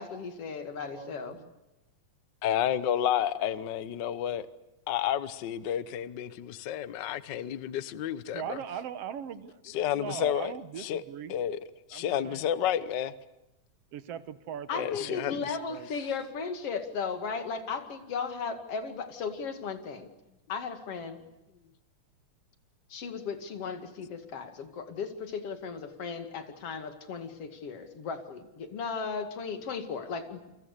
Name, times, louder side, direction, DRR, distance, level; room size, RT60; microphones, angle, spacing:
voice 1, 0.0-1.4 14.7-20.1 20.5-21.2 22.9-30.4, left 5 dB, 50° left, 3.1 m, -36 dB
voice 2, 0.8-1.5 8.3-11.3 11.9-12.4 13.9-15.9, right 8 dB, 60° right, 1.9 m, -40 dB
voice 3, 2.4-4.5 4.9-8.6 9.7-11.0 11.3-11.6 11.9-13.1 14.7-15.4, left 10 dB, 80° left, 1.0 m, -30 dB
29.5 x 24.5 x 6.8 m
omnidirectional pair, 3.6 m